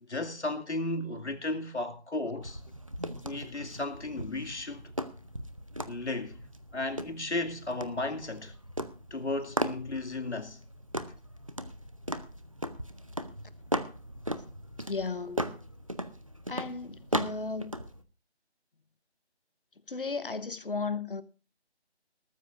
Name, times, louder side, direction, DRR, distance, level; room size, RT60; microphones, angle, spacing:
voice 1, 0.0-2.6 3.2-4.8 5.9-6.4 6.7-8.5 9.1-10.6, left 2 dB, 85° left, 2.4 m, -34 dB
sound 1, 2.4-18.0, equal, 30° right, 0.7 m, -38 dB
voice 2, 14.9-15.5 16.5-17.7 19.9-21.2, left 4 dB, 55° left, 1.1 m, -35 dB
19.5 x 13.0 x 2.5 m
figure-of-eight pair, 175°, 33 cm